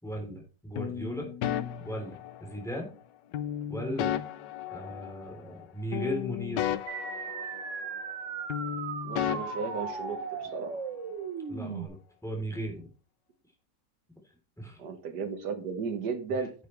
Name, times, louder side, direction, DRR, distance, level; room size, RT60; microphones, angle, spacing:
voice 1, 0.0-1.3 1.8-2.9 3.7-4.1 4.7-6.8 11.5-12.0 12.2-12.9 14.6-14.8, equal, ahead, 1 dB, 3.5 m, -36 dB
sound 1, 0.8-2.7 3.3-5.6 5.9-8.2 8.5-10.6, left 11 dB, 85° left, 1.3 m, -35 dB
sound 2, 6.9-11.9, right 6 dB, 50° right, 1.2 m, -37 dB
voice 2, 9.0-10.9 14.8-16.5, right 5 dB, 70° right, 7 dB, 2.0 m, -35 dB
10.5 x 8.3 x 3.3 m, 0.35 s
omnidirectional pair, 1.9 m